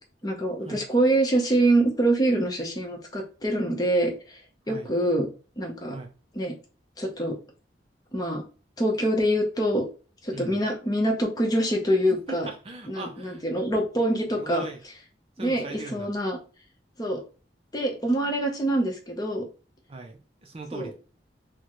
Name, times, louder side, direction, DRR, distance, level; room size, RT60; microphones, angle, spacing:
voice 1, 0.2-4.4 4.7-5.3 5.6-6.0 6.3-6.5 7.0-7.4 8.1-8.4 8.8-9.9 10.2-12.5 12.9-14.7 15.4-16.4 17.0-17.2 17.7-19.5 20.7-20.9, right 1 dB, 20° left, 2 dB, 0.7 m, -25 dB
voice 2, 10.3-10.6 12.1-13.4 14.4-14.8 15.4-16.1 19.9-20.9, right 3 dB, 30° right, 3 dB, 0.5 m, -39 dB
4.1 x 2.1 x 3.0 m, 0.35 s
head